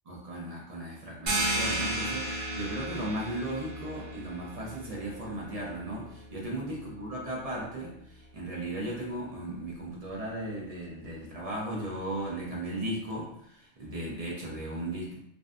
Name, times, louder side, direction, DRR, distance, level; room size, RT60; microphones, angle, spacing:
voice 1, 0.1-15.2, right 1 dB, 45° right, -4 dB, 0.5 m, -36 dB
sound 1, 1.3-6.6, right 1 dB, 80° right, 1.1 m, -34 dB
2.6 x 2.1 x 2.4 m, 0.71 s
omnidirectional pair, 1.2 m